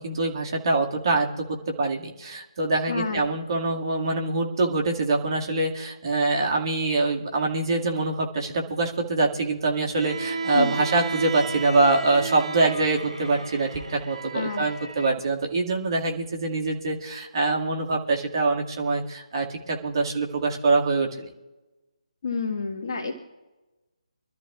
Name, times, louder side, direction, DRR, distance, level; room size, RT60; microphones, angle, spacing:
voice 1, 0.0-21.3, right 3 dB, 45° right, 0 dB, 2.1 m, -24 dB
voice 2, 2.9-3.2 10.5-10.7 14.3-14.7 22.2-23.2, left 4 dB, 40° left, 0 dB, 1.6 m, -29 dB
Bowed string instrument, 9.9-15.2, right 4 dB, 75° right, 1.0 m, -34 dB
24.5 x 13.0 x 2.4 m, 1.1 s
figure-of-eight pair, 145°, 4 cm